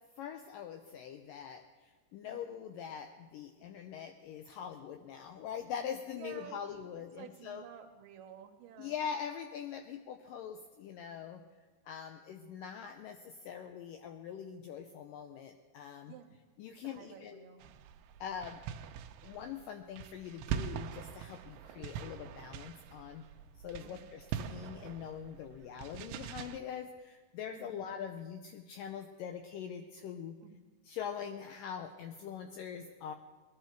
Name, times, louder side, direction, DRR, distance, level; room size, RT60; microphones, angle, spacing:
voice 1, 0.2-7.6 8.8-11.4 11.9-16.1 16.6-17.5 18.2-18.6 19.2-23.2 23.6-30.4 30.9-33.1, left 8 dB, 80° left, 6 dB, 2.0 m, -43 dB
voice 2, 6.1-9.0 16.0-16.3 16.7-17.7 23.8-24.1 27.5-27.9 30.4-30.7, right 8 dB, 70° right, 5 dB, 2.5 m, -52 dB
sound 1, 17.6-26.6, right 9 dB, 85° right, 2.6 m, -43 dB
20.5 x 11.5 x 4.6 m, 1.3 s
omnidirectional pair, 4.6 m